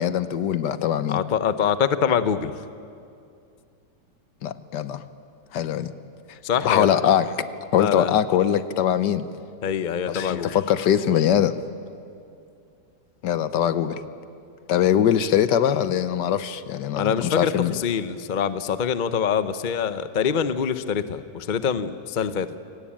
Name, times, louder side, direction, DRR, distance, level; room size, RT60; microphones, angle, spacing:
voice 1, 0.0-1.2 4.4-5.0 5.5-5.9 6.6-7.3 7.7-9.3 10.1-11.6 13.2-14.0 14.7-17.8, left 9 dB, 75° left, 13 dB, 1.5 m, -22 dB
voice 2, 1.1-2.5 6.4-6.9 7.8-8.1 9.6-10.6 17.0-22.5, left 7 dB, 50° left, 12 dB, 0.6 m, -24 dB
27.5 x 17.5 x 8.8 m, 2.5 s
omnidirectional pair, 1.9 m